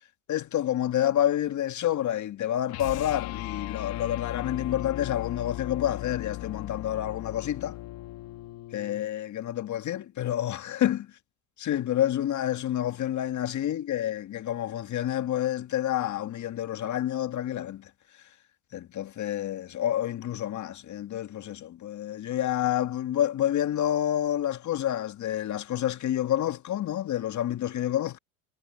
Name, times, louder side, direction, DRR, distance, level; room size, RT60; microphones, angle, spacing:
voice 1, 0.3-7.8 8.7-11.0 11.6-17.9 18.7-28.2, left 11 dB, 40° left, 1.8 m, -28 dB
sound 1, 2.7-9.1, left 17 dB, 60° left, 2.6 m, -37 dB
hypercardioid pair, 80°, 42 cm